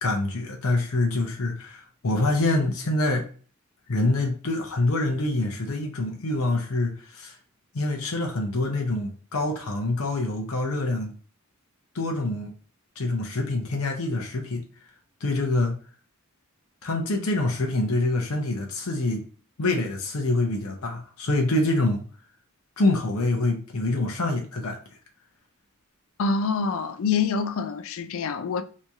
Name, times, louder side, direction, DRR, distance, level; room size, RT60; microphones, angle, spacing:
voice 1, 0.0-3.3 3.9-7.4 7.7-11.1 11.9-12.5 13.0-14.6 15.2-15.7 16.8-19.2 19.6-22.1 22.8-24.8, left 2 dB, 80° left, 0.8 m, -26 dB
voice 2, 26.2-28.6, left 5 dB, 65° left, 0.4 m, -26 dB
3.1 x 2.8 x 3.4 m
head